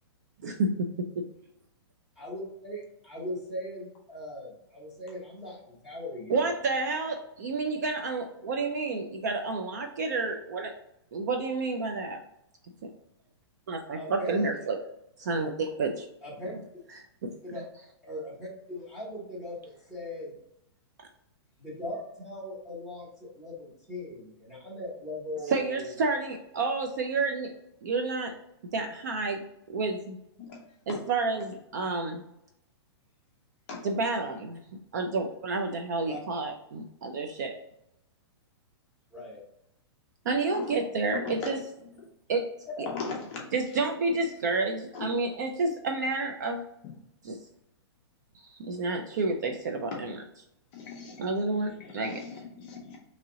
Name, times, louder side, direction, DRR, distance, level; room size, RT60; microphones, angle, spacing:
voice 1, 2.2-6.5 13.9-14.6 16.2-16.5 17.4-17.6 18.0-20.3 21.6-25.9 36.0-36.2 39.1-39.4 42.7-43.0, left 1 dB, ahead, -8 dB, 0.9 m, -39 dB
voice 2, 6.3-10.7 11.1-12.2 13.7-14.8 15.2-16.0 17.2-17.3 25.5-27.5 27.8-28.3 28.7-29.4 29.7-30.2 30.9-32.2 33.8-34.6 34.9-37.5 40.3-41.6 42.3-42.4 43.5-46.6 47.2-47.4 48.7-50.2 51.2-52.2, right 3 dB, 40° right, 4 dB, 0.4 m, -29 dB
voice 3, 42.9-43.4 44.9-45.1 49.9-50.0 50.7-51.3 51.8-53.0, left 4 dB, 25° left, -2 dB, 0.6 m, -39 dB
2.9 x 2.8 x 3.6 m, 0.80 s
hypercardioid pair, 175°, 14 cm